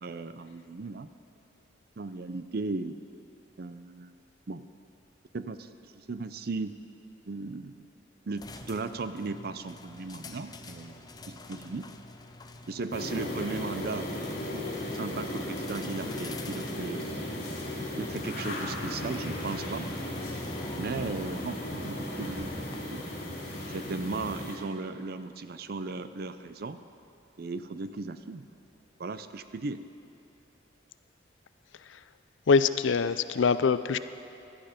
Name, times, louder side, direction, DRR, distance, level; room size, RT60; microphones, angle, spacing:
voice 1, 0.0-1.1 2.0-3.0 3.6-4.2 4.5-4.6 5.3-6.7 7.3-7.9 8.3-11.9 12.7-14.1 14.5-17.3 18.0-19.9 20.8-22.5 22.9-23.0 23.7-26.8 27.4-28.6 29.0-29.8, right 3 dB, 50° right, 12 dB, 0.5 m, -36 dB
mechanical garage door opener door closing quad, 8.4-22.8, left 2 dB, 20° left, 0.6 m, -47 dB
sound 1, 12.9-24.6, left 1 dB, 55° left, 3.5 m, -36 dB
voice 2, 32.5-34.0, left 5 dB, 75° left, 13 dB, 0.5 m, -23 dB
16.0 x 11.5 x 5.1 m, 2.7 s
head